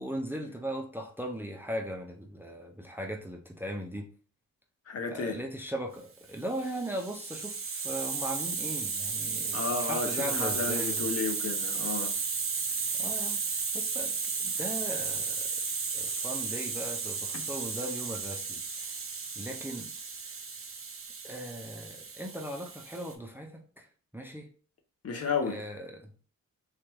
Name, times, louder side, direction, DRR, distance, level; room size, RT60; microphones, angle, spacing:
voice 1, 0.0-4.1 5.1-11.0 13.0-13.4 13.7-14.1 14.4-15.5 15.9-19.0 19.4-19.9 21.2-23.9 24.1-24.5 25.5-26.1, right 1 dB, 5° right, 0.5 m, -38 dB
voice 2, 4.9-5.4 9.5-12.1 17.3-17.4 25.0-25.6, left 5 dB, 50° left, 0.8 m, -32 dB
Hiss, 6.5-23.1, right 5 dB, 45° right, 0.7 m, -34 dB
3.3 x 2.3 x 3.0 m
cardioid pair, 75°, 31 cm